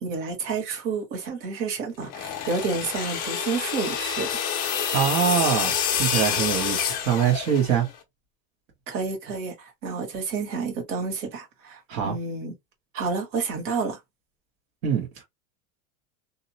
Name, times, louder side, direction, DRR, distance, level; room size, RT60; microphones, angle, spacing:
voice 1, 0.0-4.4 8.9-12.5 12.9-14.0, right 4 dB, 65° right, 1.4 m, -30 dB
sound 1, 2.0-7.9, left 8 dB, 25° left, 0.3 m, -28 dB
voice 2, 4.9-6.8 7.0-7.9 11.9-12.2 14.8-15.2, right 8 dB, 85° right, 1.2 m, -23 dB
2.7 x 2.0 x 2.7 m
supercardioid pair, 160°, 40 cm